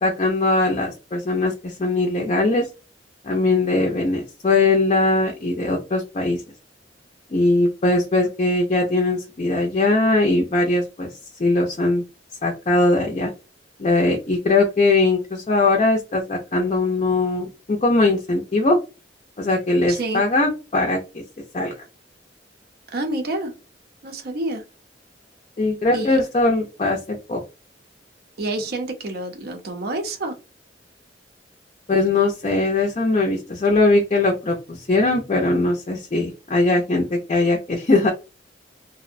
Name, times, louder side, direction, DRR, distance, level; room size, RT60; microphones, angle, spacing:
voice 1, 0.0-2.7 3.2-6.4 7.3-11.1 11.4-12.0 12.4-13.3 13.8-18.8 19.4-21.2 21.5-21.7 25.6-27.4 31.9-38.1, left 2 dB, 35° left, 1 dB, 0.4 m, -20 dB
voice 2, 19.9-20.3 22.9-23.5 24.0-24.6 25.9-26.1 28.4-30.4, right 2 dB, 60° right, 5 dB, 0.6 m, -28 dB
2.6 x 2.0 x 2.5 m, 0.30 s
head